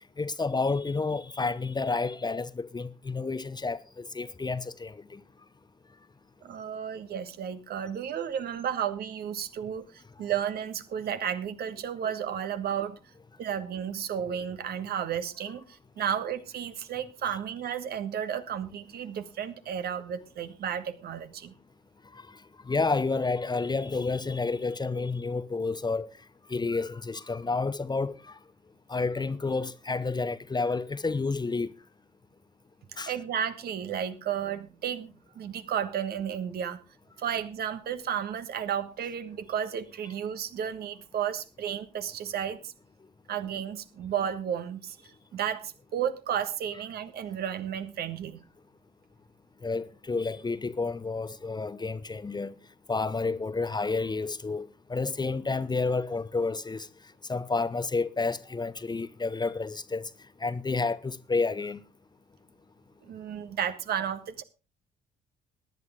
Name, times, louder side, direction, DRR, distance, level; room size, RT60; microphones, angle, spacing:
voice 1, 0.2-5.2 22.1-22.2 22.7-26.1 26.5-28.3 28.9-31.7 33.0-33.1 49.6-52.5 52.9-56.9 57.3-60.1 60.4-61.8, left 3 dB, 20° left, 0.9 m, -30 dB
voice 2, 6.4-13.0 13.4-21.5 33.1-36.8 37.2-42.7 43.3-48.4 63.0-64.4, right 9 dB, 55° right, 1.4 m, -33 dB
18.0 x 11.0 x 3.6 m
figure-of-eight pair, 45°, 20 cm